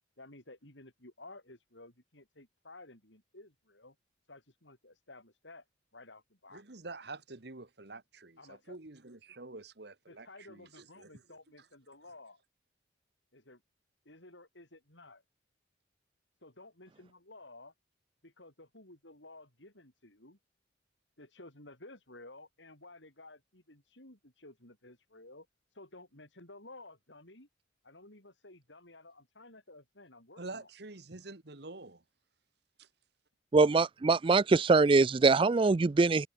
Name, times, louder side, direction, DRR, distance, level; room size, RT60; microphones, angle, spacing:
voice 1, 0.2-3.9 4.3-5.6 5.9-6.6 8.4-8.8 10.1-12.4 13.3-13.6 14.1-15.2 16.4-17.7 18.2-20.4 21.2-27.5 27.8-30.7, left 2 dB, 75° left, 7.5 m, -54 dB
voice 2, 6.5-11.2 30.4-32.0 32.8-32.9, right 3 dB, 60° right, 1.5 m, -47 dB
voice 3, 33.5-36.3, right 3 dB, 25° right, 0.4 m, -23 dB
head